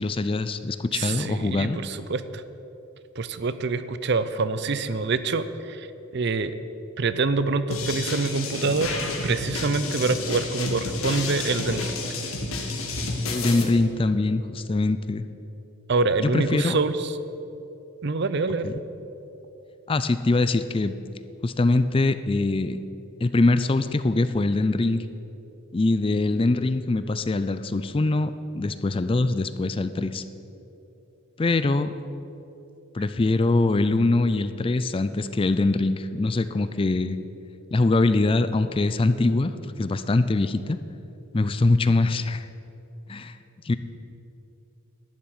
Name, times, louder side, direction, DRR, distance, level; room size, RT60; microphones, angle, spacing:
voice 1, 0.0-1.8 13.2-15.2 16.2-16.8 18.6-18.7 19.9-21.0 21.4-22.8 23.2-25.0 25.7-30.2 31.4-31.9 32.9-37.2 37.7-40.8 41.3-42.5 43.1-43.4 43.6-43.7, left 2 dB, 25° left, 12 dB, 0.4 m, -23 dB
voice 2, 0.9-2.4 3.2-5.9 6.1-6.5 7.0-8.9 9.2-11.9 15.9-17.1 18.0-18.7, right 3 dB, 55° right, 13 dB, 0.6 m, -25 dB
sound 1, 7.7-13.6, left 3 dB, 80° left, 2.1 m, -30 dB
11.5 x 7.2 x 9.5 m, 3.0 s
head